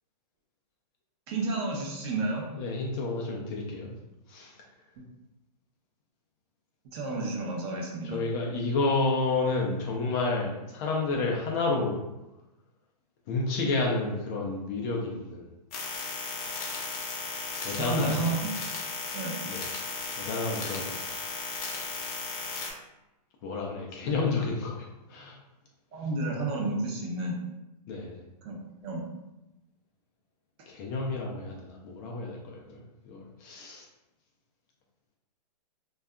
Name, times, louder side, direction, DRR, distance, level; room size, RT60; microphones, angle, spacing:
voice 1, 1.3-2.4 6.9-8.2 17.7-18.5 19.1-19.4 24.0-24.1 25.9-27.4 28.4-29.0, right 2 dB, 40° right, -1 dB, 0.6 m, -31 dB
voice 2, 2.5-3.9 4.3-4.5 8.0-12.0 13.3-15.5 17.6-18.3 19.5-19.7 20.1-21.0 23.4-25.4 27.9-28.2 30.7-33.9, left 3 dB, 30° left, -2 dB, 0.4 m, -30 dB
sound 1, 15.7-22.7, left 4 dB, 60° left, 0.7 m, -35 dB
2.6 x 2.2 x 2.3 m, 0.95 s
hypercardioid pair, 145°, 21 cm